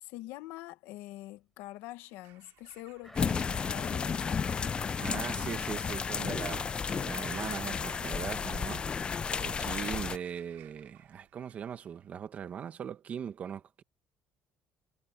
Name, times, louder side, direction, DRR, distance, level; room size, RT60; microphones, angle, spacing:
voice 1, 0.0-4.5, left 17 dB, 90° left, 1.3 m, -45 dB
Bird vocalization bird call bird song / Crow, 2.1-12.0, right 19 dB, 90° right, 4.3 m, -59 dB
sound 1, 3.0-5.9 6.3-6.4, left 1 dB, 5° left, 4.3 m, -57 dB
sound 2, 3.1-10.2, left 6 dB, 25° left, 0.4 m, -33 dB
voice 2, 5.0-8.8 9.4-13.8, right 8 dB, 40° right, 2.0 m, -40 dB
cardioid pair, 135°, 4 cm